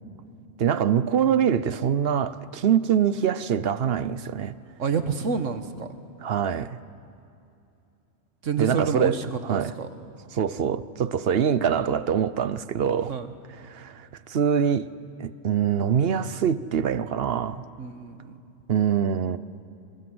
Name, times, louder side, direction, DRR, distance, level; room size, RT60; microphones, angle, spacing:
voice 1, 0.6-4.5 6.2-6.8 8.6-9.2 9.4-9.7 10.3-13.1 13.7-14.9 15.2-17.6 18.7-19.4, right 8 dB, 55° right, 0.9 m, -24 dB
voice 2, 4.8-5.9 8.4-9.2 9.5-9.9 13.1-13.3 17.8-18.4, right 5 dB, 70° right, 1.7 m, -28 dB
27.5 x 27.5 x 7.9 m
omnidirectional pair, 1.3 m